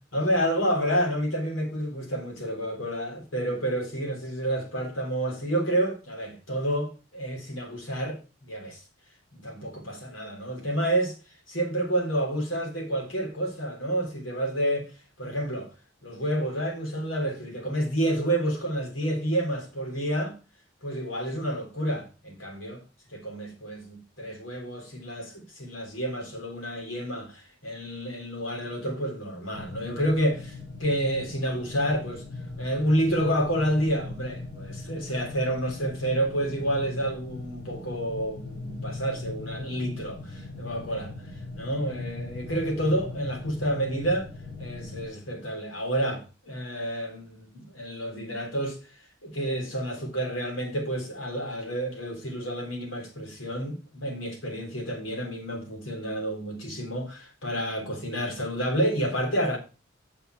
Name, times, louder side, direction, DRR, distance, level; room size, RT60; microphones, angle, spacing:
voice 1, 0.1-8.2 8.5-8.8 9.4-11.2 11.5-14.9 15.2-15.7 16.0-20.4 20.8-22.8 23.1-32.2 32.6-41.1 41.6-44.3 44.6-48.8 49.2-59.6, right 1 dB, 90° left, 3.6 m, -29 dB
sound 1, 29.5-45.1, left 2 dB, 60° left, 3.9 m, -39 dB
8.9 x 6.7 x 4.6 m
head